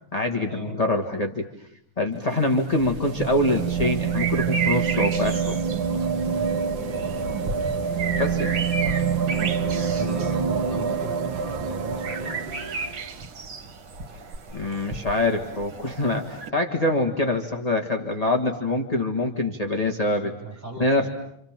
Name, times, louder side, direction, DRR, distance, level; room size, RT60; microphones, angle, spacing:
voice 1, 0.1-1.5 2.0-5.6 8.2-8.6 14.1-14.2 14.5-20.3 20.8-21.1, left 1 dB, 20° left, 1 dB, 1.7 m, -24 dB
sound 1, 2.2-13.1 14.3-14.4, right 6 dB, 65° right, 2.0 m, -27 dB
sound 2, 3.5-16.5, right 4 dB, 80° right, 2.6 m, -34 dB
voice 2, 6.3-6.6 9.9-12.4 20.2-21.1, right 2 dB, 25° right, 1 dB, 7.6 m, -38 dB
sound 3, 9.8-10.8 12.5-13.4 14.7-15.4, left 4 dB, 55° left, 6.8 m, -49 dB
28.5 x 28.0 x 7.5 m, 0.75 s
omnidirectional pair, 2.4 m